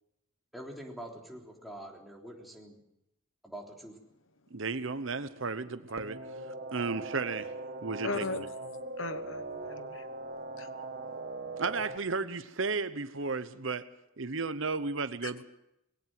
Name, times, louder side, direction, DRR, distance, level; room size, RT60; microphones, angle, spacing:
voice 1, 0.5-2.8 3.4-4.0, right 1 dB, ahead, 3.4 m, -45 dB
voice 2, 4.5-6.2 6.7-7.5 7.8-8.5 11.6-13.8 14.2-15.4, right 4 dB, 65° right, 1.0 m, -33 dB
sound 1, 6.0-12.0, right 2 dB, 45° right, 1.3 m, -40 dB
voice 3, 8.0-8.5 9.0-10.1 10.6-10.7 15.2-15.3, left 3 dB, 65° left, 1.2 m, -37 dB
20.5 x 17.5 x 7.6 m
head